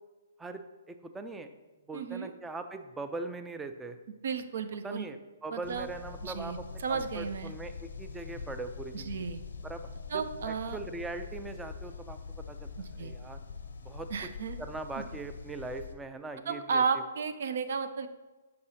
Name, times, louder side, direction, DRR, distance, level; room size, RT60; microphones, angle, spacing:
voice 1, 0.9-1.5 1.9-4.0 4.8-9.3 9.6-9.8 10.1-12.2 12.5-12.7 13.0-13.4 13.8-14.1 14.6-16.8, right 3 dB, 10° right, 8 dB, 0.4 m, -41 dB
voice 2, 1.9-2.3 4.2-5.1 5.5-5.9 6.2-7.5 8.9-9.4 10.1-10.8 12.8-13.1 14.1-14.6 15.0-15.1 16.5-18.1, right 5 dB, 65° right, 10 dB, 0.5 m, -33 dB
sound 1, 5.6-16.0, left 5 dB, 85° left, 0.6 m, -44 dB
6.6 x 5.3 x 2.8 m, 1.2 s
hypercardioid pair, 140°, 0 cm